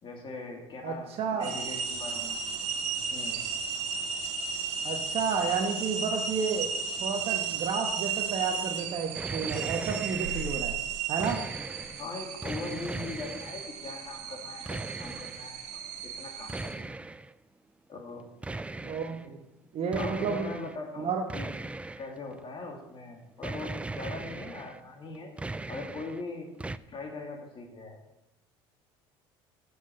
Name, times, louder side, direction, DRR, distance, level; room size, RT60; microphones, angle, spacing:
voice 1, 0.0-2.6 3.1-3.4 12.0-16.9 17.9-18.3 19.2-19.3 20.0-21.5 22.0-25.3 25.7-26.6 26.9-28.0, left 3 dB, 40° left, 2 dB, 2.6 m, -41 dB
voice 2, 0.8-1.6 4.8-6.7 7.0-10.8 11.1-11.5 18.8-19.4 19.7-20.6 21.0-21.3, right 5 dB, 50° right, 3 dB, 1.2 m, -31 dB
sound 1, 1.4-16.7, right 6 dB, 70° right, 1.5 m, -34 dB
sound 2, 9.1-10.6 11.0-12.0 12.4-13.7 14.6-15.5 16.5-17.3 18.4-19.3 19.9-20.8 21.3-22.4 23.4-24.8 25.1-26.2 26.6-26.8, right 2 dB, 10° right, 0.3 m, -38 dB
7.7 x 7.5 x 6.4 m, 0.92 s
supercardioid pair, 90°, 13 cm